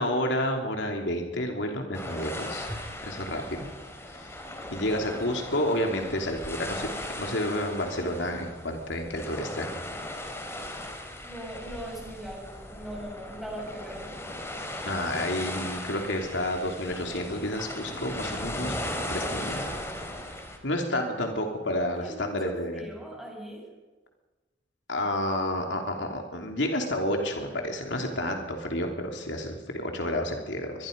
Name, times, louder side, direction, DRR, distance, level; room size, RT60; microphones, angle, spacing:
voice 1, 0.0-2.7 3.0-3.7 4.1-4.4 4.7-6.9 7.1-9.7 14.9-18.8 19.1-19.6 20.6-22.8 24.9-30.9, left 1 dB, 80° left, 3 dB, 3.2 m, -30 dB
sound 1, 1.9-20.6, left 1 dB, 15° left, 3.2 m, -37 dB
voice 2, 4.4-4.7 11.2-14.4 19.1-19.5 21.0-21.1 21.9-23.7, right 1 dB, ahead, -1 dB, 7.4 m, -41 dB
25.0 x 21.0 x 5.4 m, 1.2 s
head